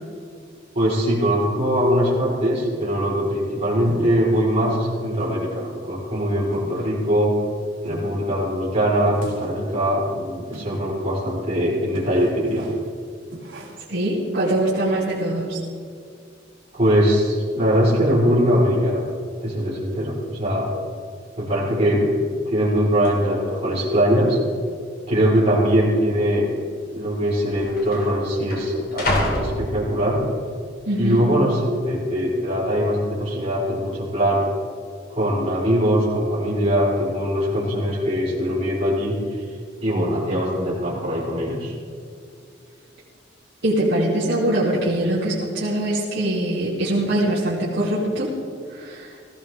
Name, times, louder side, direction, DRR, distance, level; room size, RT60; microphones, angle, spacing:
voice 1, 0.7-7.3 7.8-12.7 16.7-19.0 19.4-20.7 21.4-22.1 22.5-24.4 25.1-26.5 26.9-30.2 31.0-34.5 35.1-39.2 39.8-41.7, equal, 35° right, -6 dB, 4.4 m, -21 dB
sound 1, 3.8-4.4 4.8-4.9 5.2-5.5 5.8-5.9 6.5-7.1 7.8-8.3 9.1-9.7 10.5-11.0 11.3-11.4 11.9-12.9 13.3-14.0, right 1 dB, 85° right, 2.7 m, -39 dB
voice 2, 13.9-15.6 30.9-31.3 43.6-48.3 48.7-49.2, right 1 dB, 70° right, -8 dB, 2.7 m, -23 dB
sound 2, 21.9-22.3 23.0-23.1 23.9-24.4 24.7-24.8 25.7-25.8 26.8-26.9 27.1-30.4 30.9-31.3, left 1 dB, 55° left, 2.9 m, -29 dB
17.5 x 15.0 x 3.6 m, 2.2 s
head